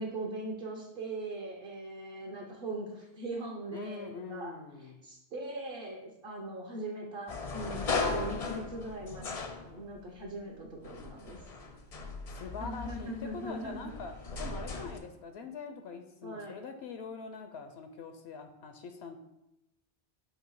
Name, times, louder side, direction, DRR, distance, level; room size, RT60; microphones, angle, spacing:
voice 1, 0.0-4.5 5.0-11.4 12.6-13.9 16.2-16.6, right 2 dB, 60° right, -2 dB, 1.1 m, -40 dB
voice 2, 3.7-5.0 12.3-14.1 14.4-19.2, left 5 dB, 75° left, 6 dB, 0.9 m, -43 dB
sound 1, 7.3-10.2 10.8-15.0, left 4 dB, 45° left, 0.5 m, -37 dB
7.4 x 2.7 x 4.6 m, 0.87 s
omnidirectional pair, 1.1 m